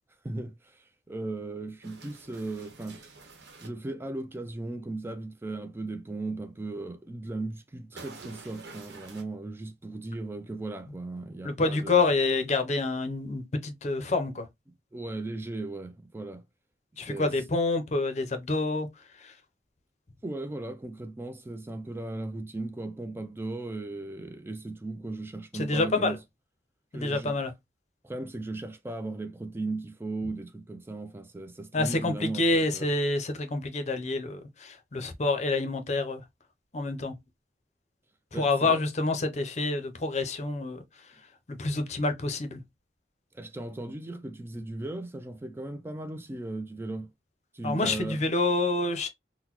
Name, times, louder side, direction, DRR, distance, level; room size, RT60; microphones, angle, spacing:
voice 1, 0.2-3.0 3.6-12.1 14.9-16.4 17.0-17.3 20.2-26.2 26.9-27.4 28.0-32.9 38.3-38.8 43.3-47.1 47.5-48.2, right 2 dB, 15° right, 0.3 m, -37 dB
sound 1, 1.8-3.7 8.0-9.2, right 3 dB, 75° right, 1.1 m, -48 dB
voice 2, 11.4-14.5 17.0-19.4 25.5-26.2 26.9-27.5 31.7-36.2 36.7-37.1 38.3-41.1 41.5-42.6 47.6-49.1, left 3 dB, 40° left, 0.6 m, -28 dB
3.8 x 2.1 x 2.9 m
head